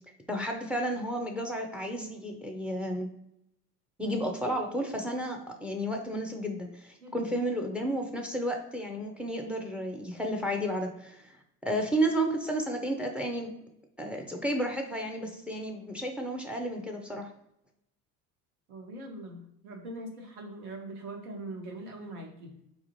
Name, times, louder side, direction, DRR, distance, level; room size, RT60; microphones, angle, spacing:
voice 1, 0.3-3.1 4.0-11.4 11.6-13.5 14.0-17.3, right 1 dB, 5° right, 3 dB, 0.5 m, -32 dB
voice 2, 18.7-22.6, right 1 dB, 70° right, 1 dB, 1.1 m, -42 dB
4.1 x 2.4 x 3.0 m, 0.78 s
figure-of-eight pair, 65°, 47 cm